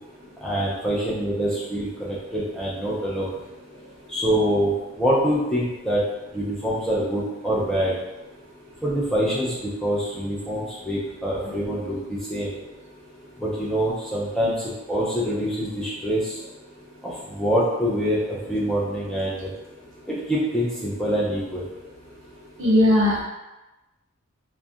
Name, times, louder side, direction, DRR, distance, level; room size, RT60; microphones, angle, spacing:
voice 1, 0.4-3.3 4.1-4.7 5.0-6.0 6.3-7.9 8.8-12.5 13.4-14.5 14.9-16.4 17.3-19.5 20.1-21.6, equal, ahead, -7 dB, 0.4 m, -25 dB
voice 2, 22.6-23.2, left 1 dB, 60° right, -4 dB, 0.7 m, -18 dB
2.4 x 2.1 x 2.6 m, 1.0 s
head